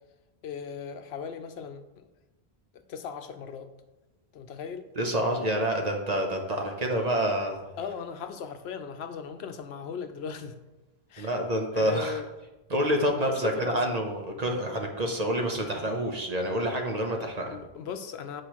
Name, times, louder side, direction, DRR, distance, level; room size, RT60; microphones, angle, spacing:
voice 1, 0.4-2.0 2.7-3.7 4.3-4.9 7.8-10.6 11.1-11.4 11.7-12.3 13.3-14.0 17.5-18.4, left 7 dB, 90° left, 9 dB, 0.9 m, -37 dB
voice 2, 5.0-7.6 11.2-12.2 12.7-17.5, equal, 45° right, 2 dB, 0.9 m, -28 dB
8.2 x 4.7 x 3.0 m, 1.0 s
omnidirectional pair, 1.0 m